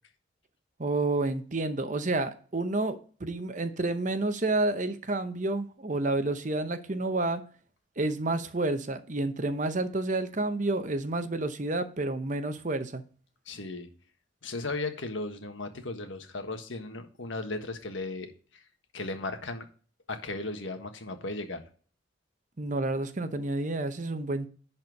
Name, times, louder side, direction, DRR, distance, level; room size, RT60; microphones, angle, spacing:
voice 1, 0.8-7.4 8.0-13.0 22.6-24.5, right 2 dB, 40° right, 0.8 m, -30 dB
voice 2, 13.5-13.9 14.4-18.6 18.9-19.7 20.1-21.6, left 2 dB, 75° left, 1.5 m, -36 dB
11.0 x 4.4 x 5.3 m
head